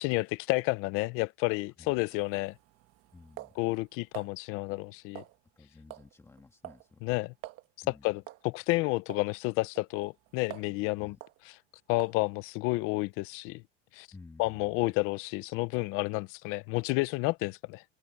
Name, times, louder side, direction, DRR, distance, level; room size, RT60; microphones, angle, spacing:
voice 1, 0.0-2.5 3.6-5.2 7.0-7.3 8.0-11.1 11.9-13.6 13.9-14.1 14.4-17.8, left 23 dB, 40° left, 0.5 m, -30 dB
sound 1, 2.0-4.3 5.1-5.6 5.9-6.1 6.4-6.9 7.1-7.2 7.4-7.7 8.3-8.5 9.1-9.3 9.8-10.8 11.2-11.4 12.0-12.3, right 17 dB, 40° right, 1.3 m, -47 dB
voice 2, 3.1-3.5 5.5-7.2 7.8-8.2 11.0-11.2 14.1-14.9, left 3 dB, 10° left, 1.8 m, -54 dB
cardioid pair, 170°, 35 cm